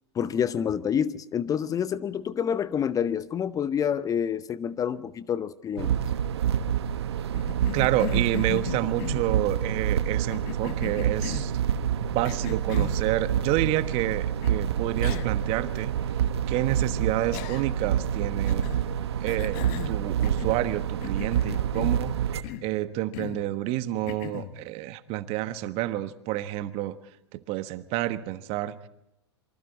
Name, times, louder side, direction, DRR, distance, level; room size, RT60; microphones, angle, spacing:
voice 1, 0.1-5.9, left 8 dB, 25° left, 0.8 m, -28 dB
sound 1, 5.8-22.4, right 9 dB, 70° right, 1.2 m, -27 dB
Cough, 7.3-9.5 10.3-11.6 12.2-13.0 14.4-14.5 15.0-15.4 15.8-15.9 17.3-17.9 18.4-18.8 19.3-20.7 21.0-22.1 22.4-22.7 23.1-23.4 24.1-24.5, left 13 dB, 50° left, 1.3 m, -37 dB
voice 2, 7.7-11.5 12.0-15.9 16.5-18.7 19.2-22.1 22.6-26.9 27.3-28.8, right 14 dB, 45° right, 1.3 m, -29 dB
27.5 x 24.5 x 4.2 m
figure-of-eight pair, 95°, 14 cm